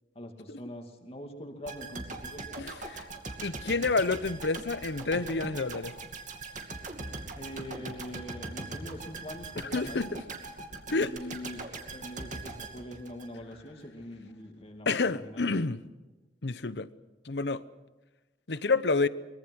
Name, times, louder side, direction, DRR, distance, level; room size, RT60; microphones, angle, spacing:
voice 1, 0.1-2.4 7.4-10.2 10.9-15.5, left 1 dB, 35° left, 3 dB, 2.4 m, -43 dB
sound 1, 1.7-13.7 14.0-14.1, right 3 dB, 45° right, 2.5 m, -41 dB
voice 2, 2.6-3.1 3.4-6.0 9.7-10.2 10.9-11.1 14.9-15.8 16.4-16.9 17.2-17.6 18.5-19.1, left 3 dB, 70° left, 15 dB, 0.9 m, -29 dB
24.0 x 22.0 x 6.3 m, 1.2 s
head